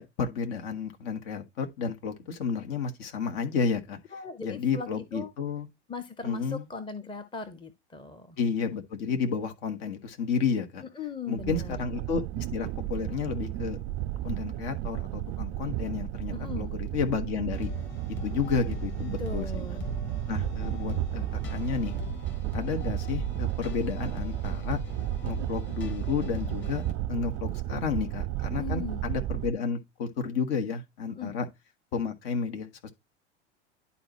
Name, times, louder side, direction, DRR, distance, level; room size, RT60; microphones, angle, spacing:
voice 1, 0.0-4.0 4.4-5.7 6.2-6.7 8.4-10.8 11.3-13.8 14.2-17.7 18.2-19.8 20.3-21.9 22.5-24.8 25.2-26.8 27.1-31.5 31.9-32.9, left 6 dB, 55° left, 1.5 m, -31 dB
voice 2, 4.1-5.3 5.9-8.4 11.0-11.8 16.3-16.7 19.2-19.9 28.6-29.0 31.1-31.3, left 5 dB, 15° left, 0.9 m, -38 dB
sound 1, 11.4-29.5, right 15 dB, 40° right, 0.4 m, -33 dB
sound 2, 17.5-26.9, left 5 dB, 30° left, 2.4 m, -40 dB
11.0 x 4.1 x 3.1 m
figure-of-eight pair, 85°, 35 cm